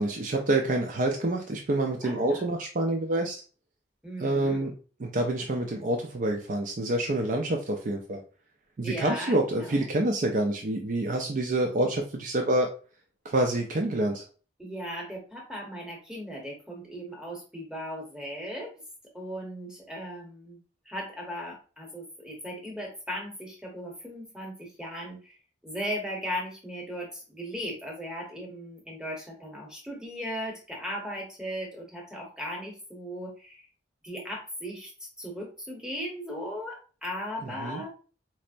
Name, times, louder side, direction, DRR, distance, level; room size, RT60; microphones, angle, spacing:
voice 1, 0.0-3.4 4.2-4.7 5.0-8.2 8.8-12.7 13.2-14.2 37.4-37.8, right 1 dB, 45° right, 2 dB, 0.4 m, -27 dB
voice 2, 2.0-2.4 4.0-4.7 8.8-9.8 14.6-18.7 19.1-20.6 20.9-25.3 25.6-33.7 34.0-37.9, equal, 5° right, -3 dB, 0.9 m, -37 dB
4.3 x 2.0 x 2.5 m, 0.37 s
head